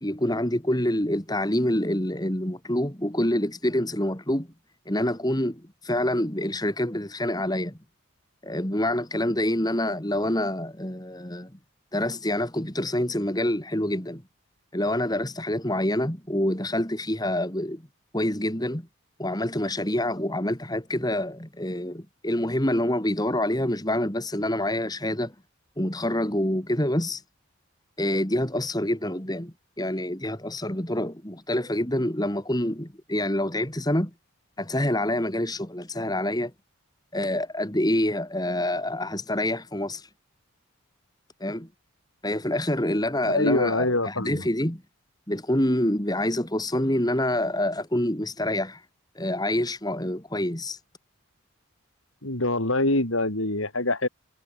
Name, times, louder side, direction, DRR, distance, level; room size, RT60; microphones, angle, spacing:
voice 1, 0.0-4.5 4.9-7.8 8.4-11.5 11.9-14.2 14.7-17.8 18.1-18.9 19.2-25.3 25.8-27.2 28.0-34.1 34.6-36.5 37.1-40.1 41.4-41.7 42.2-44.8 45.3-48.8 49.2-50.8, left 1 dB, 20° left, 2.7 m, -26 dB
voice 2, 43.3-44.4 52.2-54.1, left 2 dB, 70° left, 5.2 m, -24 dB
head